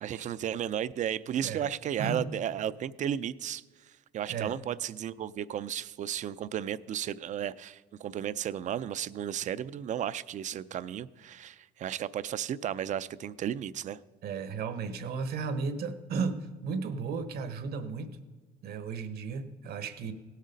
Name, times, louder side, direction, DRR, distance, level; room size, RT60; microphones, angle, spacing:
voice 1, 0.0-3.6 4.1-14.0, right 10 dB, 45° right, 17 dB, 0.4 m, -34 dB
voice 2, 14.2-18.1 18.6-20.1, right 5 dB, 65° right, 11 dB, 1.1 m, -34 dB
17.0 x 6.5 x 5.2 m, 1.4 s
cardioid pair, 110°, 17 cm